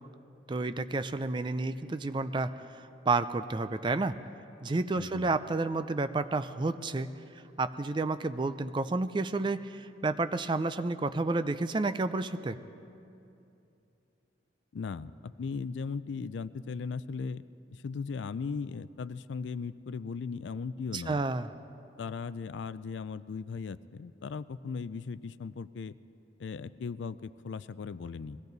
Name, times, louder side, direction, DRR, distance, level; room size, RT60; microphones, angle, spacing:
voice 1, 0.5-4.2 4.6-7.1 7.6-12.6 20.9-21.5, right 3 dB, 25° right, 11 dB, 0.4 m, -30 dB
voice 2, 4.9-5.3 14.7-17.4 17.7-21.2 22.0-26.0 26.4-28.4, left 5 dB, 75° left, 16 dB, 0.4 m, -37 dB
22.5 x 16.0 x 4.0 m, 2.7 s
head